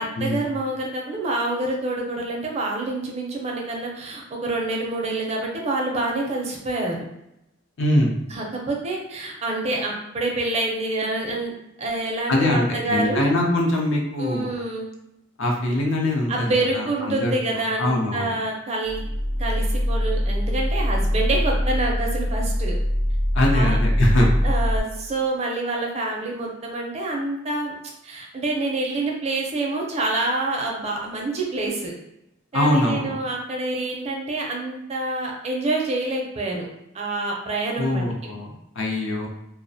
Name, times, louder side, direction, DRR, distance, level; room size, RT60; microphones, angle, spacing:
voice 1, 0.0-7.0 8.3-11.5 11.8-13.4 14.2-14.9 16.3-19.0 19.4-22.8 23.5-23.8 24.4-27.7 28.0-31.9 32.5-36.7 36.9-38.0 38.9-39.0, right 2 dB, 30° right, -1 dB, 0.4 m, -27 dB
voice 2, 7.8-8.1 12.3-14.5 15.4-18.3 23.3-24.4 32.5-33.1 37.8-39.3, left 1 dB, 65° left, 0 dB, 0.5 m, -23 dB
sound 1, 18.8-24.8, equal, 45° left, 0.9 m, -23 dB
2.4 x 2.1 x 2.6 m, 0.83 s
head